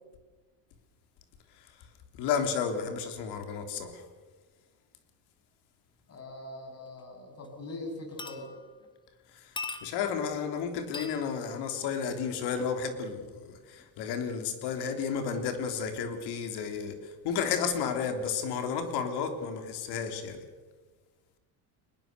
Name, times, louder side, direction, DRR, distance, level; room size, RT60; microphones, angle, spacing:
voice 1, 2.2-4.0 9.3-9.5 9.8-20.4, left 6 dB, 65° left, 6 dB, 3.5 m, -32 dB
voice 2, 6.1-8.5, left 1 dB, 35° left, 3 dB, 7.2 m, -42 dB
sound 1, 7.0-7.1 7.4-7.7 8.2-8.9 9.6-10.3 10.9-11.3 12.6-12.8 13.8-13.9, left 4 dB, 10° left, 1.8 m, -41 dB
24.0 x 20.5 x 6.9 m, 1.3 s
cardioid pair, 120°, 42 cm